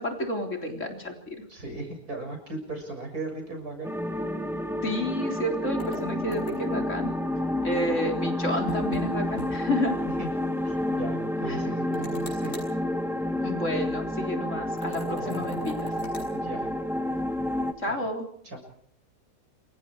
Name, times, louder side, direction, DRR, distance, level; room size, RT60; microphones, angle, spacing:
voice 1, 0.0-1.4 4.8-7.1 7.6-10.0 11.4-11.6 13.4-15.9 17.8-18.3, left 1 dB, 50° left, 3 dB, 4.2 m, -30 dB
voice 2, 1.5-3.9 10.2-10.3 10.6-12.6 15.2-15.6 16.3-16.7 17.9-18.0 18.4-18.6, right 2 dB, 70° right, 4 dB, 7.5 m, -37 dB
sound 1, 3.8-17.7, left 1 dB, ahead, 1.9 m, -30 dB
sound 2, 5.8-6.8 8.7-9.1 9.4-9.5 9.8-9.9 11.9-12.7 14.8-16.3, left 1 dB, 65° left, 7.9 m, -40 dB
28.0 x 23.5 x 4.8 m, 0.65 s
omnidirectional pair, 1.6 m